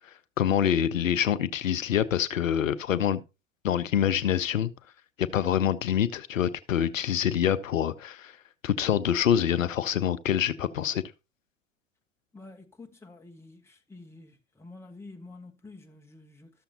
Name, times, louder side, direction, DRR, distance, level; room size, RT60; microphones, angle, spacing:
voice 1, 0.4-3.2 3.6-4.7 5.2-8.3 8.6-11.0, left 9 dB, 85° left, 0.6 m, -26 dB
voice 2, 12.3-16.5, left 3 dB, 5° left, 1.3 m, -48 dB
13.0 x 6.9 x 2.8 m
figure-of-eight pair, 85°, 38 cm